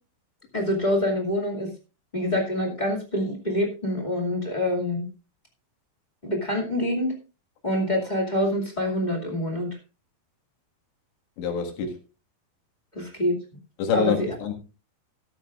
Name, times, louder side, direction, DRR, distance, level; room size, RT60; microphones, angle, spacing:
voice 1, 0.5-1.7 2.1-5.1 6.2-7.1 7.6-9.7 12.9-13.4 13.9-14.3, left 1 dB, 20° left, 1.2 m, -26 dB
voice 2, 11.4-12.0 13.8-14.5, left 6 dB, 90° left, 4.1 m, -26 dB
13.5 x 13.0 x 2.5 m
omnidirectional pair, 4.9 m